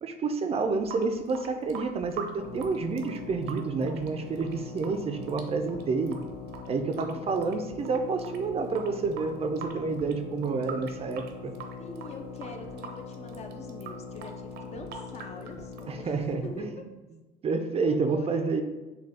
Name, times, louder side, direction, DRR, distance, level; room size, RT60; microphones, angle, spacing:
voice 1, 0.0-6.2 6.7-11.5 15.9-16.7 17.4-18.6, right 4 dB, 35° right, 6 dB, 0.4 m, -29 dB
voice 2, 0.6-1.0 6.8-7.4 11.8-16.8 17.9-18.5, left 3 dB, 40° left, 5 dB, 0.6 m, -44 dB
Water tap faucet / Sink (filling or washing) / Drip, 0.6-16.6, right 5 dB, 75° right, 0.6 m, -45 dB
sound 1, 2.3-16.8, left 5 dB, 70° left, 1.0 m, -43 dB
6.5 x 2.3 x 3.5 m, 1.1 s
cardioid pair, 110°, 17 cm